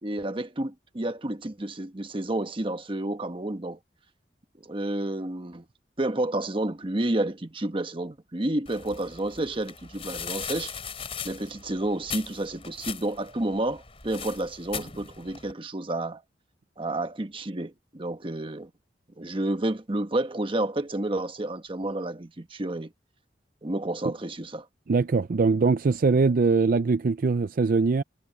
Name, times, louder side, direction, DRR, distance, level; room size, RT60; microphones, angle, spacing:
voice 1, 0.0-3.8 4.6-5.6 6.0-10.7 11.2-16.2 16.8-18.7 19.2-22.9 23.6-24.7, right 1 dB, 30° right, 1.2 m, -30 dB
sound 1, 8.7-15.5, left 7 dB, 35° left, 4.0 m, -39 dB
voice 2, 24.9-28.0, right 4 dB, 55° right, 0.4 m, -22 dB
head